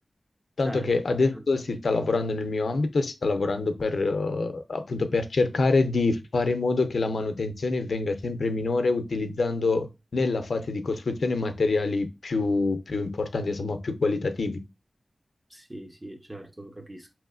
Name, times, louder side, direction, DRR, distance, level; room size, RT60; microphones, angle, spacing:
voice 1, 0.6-14.6, left 3 dB, 85° left, 0.5 m, -26 dB
voice 2, 15.5-17.1, right 2 dB, 20° right, 0.7 m, -40 dB
4.8 x 3.0 x 2.4 m
wide cardioid pair, 95°, 0 cm